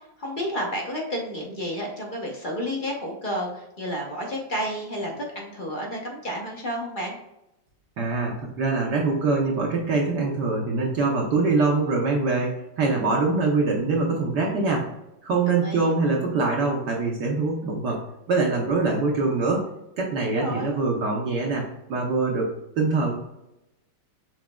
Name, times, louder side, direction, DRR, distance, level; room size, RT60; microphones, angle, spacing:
voice 1, 0.2-7.2 15.5-15.9 20.2-20.8, equal, 40° left, -1 dB, 0.7 m, -31 dB
voice 2, 8.0-14.9 15.2-19.6 20.0-23.1, right 3 dB, 65° right, -1 dB, 1.3 m, -24 dB
6.1 x 3.9 x 2.2 m, 0.89 s
omnidirectional pair, 2.1 m